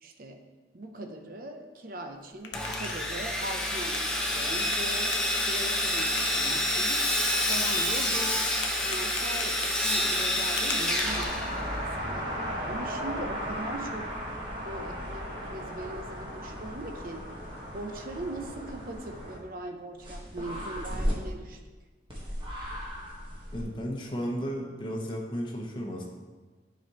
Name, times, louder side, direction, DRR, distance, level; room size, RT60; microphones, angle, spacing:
voice 1, 0.0-0.4 0.7-5.1 5.5-7.1 7.5-8.5 8.8-12.3 12.6-14.1 14.6-17.3 17.7-21.6, right 1 dB, 50° right, 5 dB, 0.6 m, -40 dB
sound 1, 2.1-11.8, left 5 dB, 85° left, 0.7 m, -44 dB
Sawing, 2.5-12.0, left 1 dB, 5° left, 0.6 m, -28 dB
sound 2, 11.0-19.4 20.0-21.1 22.1-23.6, equal, 30° right, 1.4 m, -35 dB
voice 2, 23.5-26.0, equal, 25° left, -1 dB, 1.0 m, -34 dB
9.7 x 5.1 x 3.0 m, 1.4 s
head